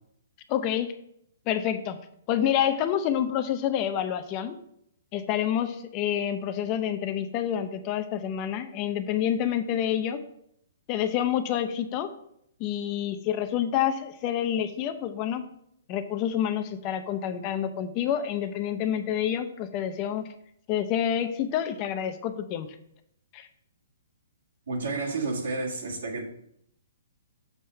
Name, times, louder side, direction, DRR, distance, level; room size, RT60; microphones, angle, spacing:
voice 1, 0.5-0.9 1.5-2.0 2.3-4.6 5.1-10.2 10.9-12.1 12.6-15.4 15.9-20.3 20.7-22.7 23.3-23.5, left 10 dB, 25° left, 0.5 m, -28 dB
voice 2, 24.7-26.2, right 3 dB, 75° right, 2.0 m, -30 dB
7.2 x 5.5 x 4.4 m
hypercardioid pair, 160°, 0 cm